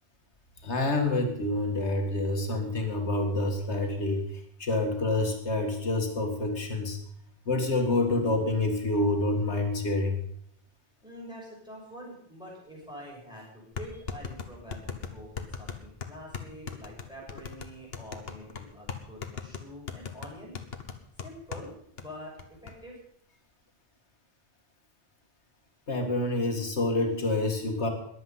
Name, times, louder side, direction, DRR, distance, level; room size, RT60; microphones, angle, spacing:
voice 1, 0.6-7.0 7.5-10.2 25.9-27.9, left 2 dB, 85° left, 3 dB, 2.3 m, -27 dB
voice 2, 11.0-20.5 21.2-22.3 22.6-23.0, equal, 5° right, -3 dB, 6.2 m, -46 dB
sound 1, 12.8-12.9 13.7-21.7 22.0-22.1 22.4-22.7, left 6 dB, 65° left, 1.4 m, -38 dB
21.5 x 8.0 x 5.6 m, 0.69 s
omnidirectional pair, 1.1 m